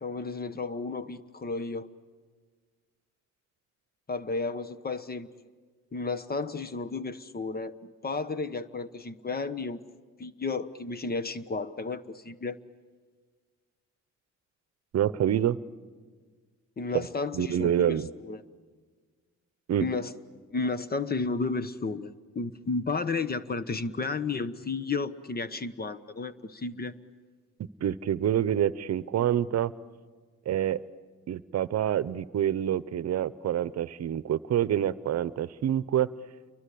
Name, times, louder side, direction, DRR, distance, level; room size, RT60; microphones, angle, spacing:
voice 1, 0.0-1.9 4.1-5.3 5.9-9.8 10.2-12.6 16.8-18.4 19.8-20.1 20.5-26.9, left 4 dB, 30° left, 14 dB, 1.1 m, -33 dB
voice 2, 14.9-15.6 17.3-18.1 19.7-19.8 27.8-29.7 30.5-30.8 31.3-36.1, right 10 dB, 55° right, 18 dB, 0.9 m, -27 dB
29.5 x 23.5 x 8.5 m, 1.5 s
cardioid pair, 90°, 30 cm